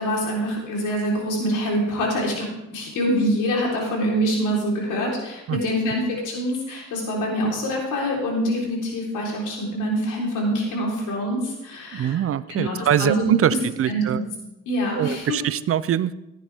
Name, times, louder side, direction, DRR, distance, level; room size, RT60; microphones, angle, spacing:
voice 1, 0.0-2.5 2.7-12.2 12.5-13.6 13.9-14.2 14.7-15.3, equal, 90° left, -2 dB, 4.0 m, -25 dB
voice 2, 11.9-14.2 15.0-16.1, right 10 dB, 50° right, 17 dB, 0.5 m, -23 dB
15.5 x 10.0 x 3.6 m, 0.92 s
cardioid pair, 90°, 30 cm